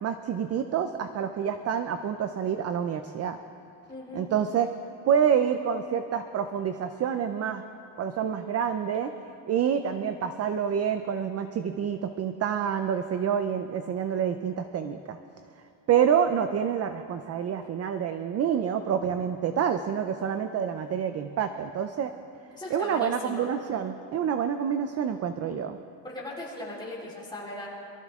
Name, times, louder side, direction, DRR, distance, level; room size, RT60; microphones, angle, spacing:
voice 1, 0.0-3.4 4.1-4.7 5.1-7.6 8.0-9.1 9.5-15.2 15.9-22.1 22.7-25.8, right 8 dB, 35° right, 9 dB, 0.5 m, -27 dB
voice 2, 3.9-4.3 22.5-23.5 26.0-27.7, left 1 dB, 10° left, -7 dB, 3.7 m, -38 dB
23.0 x 14.0 x 3.6 m, 2.6 s
cardioid pair, 160°, 46 cm